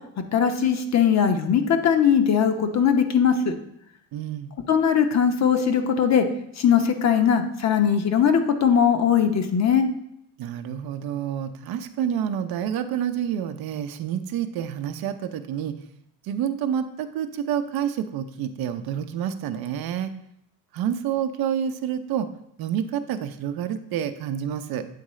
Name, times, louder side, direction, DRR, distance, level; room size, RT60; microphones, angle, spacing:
voice 1, 0.3-3.5 4.7-6.2 6.6-9.9, left 7 dB, 40° left, 7 dB, 0.8 m, -20 dB
voice 2, 4.1-4.5 10.4-15.8 16.2-20.1 20.7-22.3 22.6-24.9, right 9 dB, 55° right, 9 dB, 0.6 m, -28 dB
8.4 x 3.6 x 3.1 m, 0.73 s
supercardioid pair, 95°, 43 cm